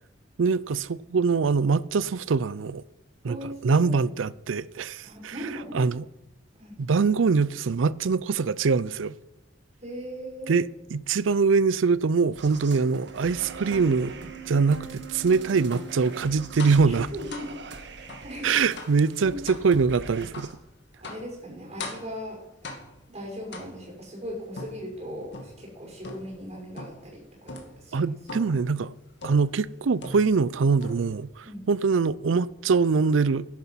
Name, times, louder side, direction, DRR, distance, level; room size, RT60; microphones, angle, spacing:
voice 1, 0.4-2.8 3.2-3.4 3.6-5.3 5.7-6.0 6.8-9.2 10.5-10.7 10.9-14.1 14.5-17.1 18.4-20.5 27.9-28.9 29.2-33.4, right 5 dB, 90° right, 0.5 m, -23 dB
voice 2, 3.2-3.9 5.0-5.8 6.6-6.8 9.8-10.6 16.8-17.6 18.0-18.6 19.2-19.4 20.9-22.7 23.1-28.1 28.4-28.5 31.4-31.6, equal, 35° right, 6.0 m, -39 dB
sound 1, 12.3-20.5, right 4 dB, 65° right, 1.6 m, -41 dB
sound 2, 16.6-16.9 17.3-17.6 18.1-18.3 18.8-19.0 19.5-19.7 20.3-20.6 21.0-21.3 21.8-22.2 22.6-23.1 23.5-24.0 24.6-25.6 26.0-26.4 26.8-27.1 27.5-27.8 28.3-28.6 29.2-29.5 30.0-30.5 30.8-31.3, left 2 dB, 65° left, 2.4 m, -40 dB
13.5 x 11.0 x 5.7 m
head